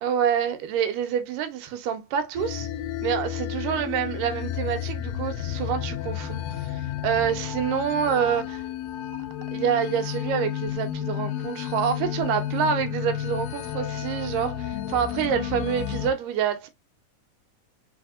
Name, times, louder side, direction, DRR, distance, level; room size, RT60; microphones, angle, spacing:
voice 1, 0.0-2.7 3.0-8.6 9.5-16.7, right 8 dB, 80° right, 2.4 m, -27 dB
sound 1, 2.4-16.1, left 10 dB, 85° left, 1.5 m, -32 dB
4.3 x 4.2 x 2.5 m
omnidirectional pair, 3.8 m